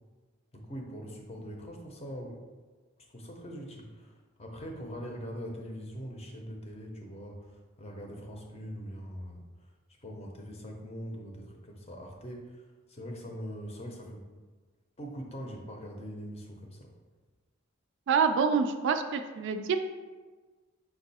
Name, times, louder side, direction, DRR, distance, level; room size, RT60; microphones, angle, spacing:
voice 1, 0.5-2.4 3.1-9.5 10.0-12.6 12.9-14.3 15.0-16.9, equal, 30° left, 1 dB, 0.6 m, -42 dB
voice 2, 18.1-19.8, right 5 dB, 60° right, 7 dB, 0.3 m, -26 dB
5.3 x 2.3 x 4.1 m, 1.3 s
head